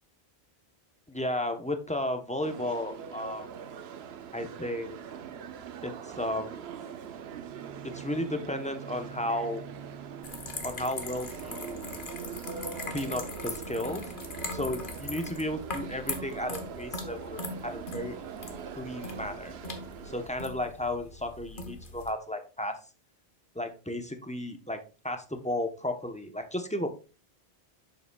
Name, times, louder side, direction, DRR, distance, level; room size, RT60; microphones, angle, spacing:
voice 1, 1.1-3.5 4.3-5.0 5.8-6.7 7.8-9.6 10.6-12.0 12.9-14.1 14.5-18.2 18.8-19.6 20.0-22.8 23.5-26.9, left 1 dB, 10° left, 6 dB, 0.7 m, -34 dB
sound 1, 2.4-20.3, right 7 dB, 80° right, 0.9 m, -43 dB
Bowed string instrument, 7.4-11.1, right 5 dB, 30° right, 0.3 m, -48 dB
sound 2, 10.2-22.1, left 3 dB, 55° left, 1.3 m, -40 dB
8.5 x 6.9 x 2.3 m, 0.33 s
omnidirectional pair, 1.1 m